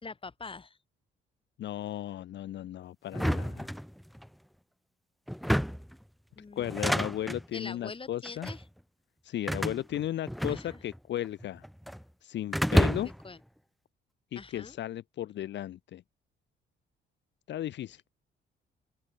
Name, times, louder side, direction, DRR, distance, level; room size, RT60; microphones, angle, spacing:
voice 1, 0.0-0.8 6.4-7.0 7.5-8.6 10.5-10.8 13.2-13.4 14.3-14.8, left 4 dB, 25° left, 3.2 m, -44 dB
voice 2, 1.6-3.7 6.6-8.5 9.2-11.6 12.2-13.1 14.3-16.0 17.5-18.1, left 12 dB, 65° left, 0.8 m, -35 dB
sound 1, 3.1-4.3 5.3-5.9 6.6-7.4 8.2-8.6 9.5-11.0 11.2-12.0 12.5-13.3, equal, ahead, 0.4 m, -29 dB
open air
cardioid pair, 90°, 20 cm